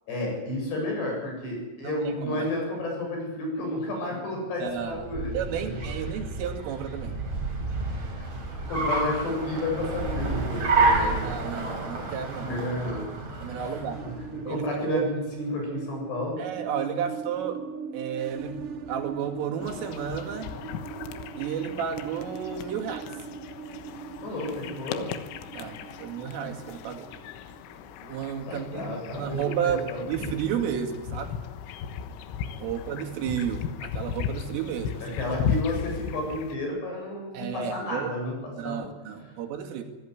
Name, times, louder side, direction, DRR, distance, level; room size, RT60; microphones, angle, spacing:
voice 1, 0.1-5.8 8.2-8.3 8.6-11.3 12.4-13.1 13.4-13.7 14.0-16.4 24.2-25.1 28.5-30.3 35.0-38.9, left 1 dB, 55° left, 0 dB, 9.7 m, -32 dB
voice 2, 1.8-2.5 4.6-5.0 5.3-7.2 11.0-12.5 13.4-14.0 14.4-15.1 16.4-17.6 17.9-18.6 18.9-20.5 21.4-23.1 25.5-27.1 28.0-31.4 32.6-35.2 37.3-38.1 38.6-39.8, right 8 dB, 80° right, 3 dB, 4.8 m, -32 dB
Car, 4.8-14.3, right 2 dB, 35° right, 5.9 m, -29 dB
sound 1, 13.9-28.6, right 6 dB, 60° right, 2.2 m, -41 dB
sound 2, 19.6-36.6, left 8 dB, 85° left, 3.8 m, -36 dB
25.5 x 17.0 x 9.8 m, 1.2 s
omnidirectional pair, 5.7 m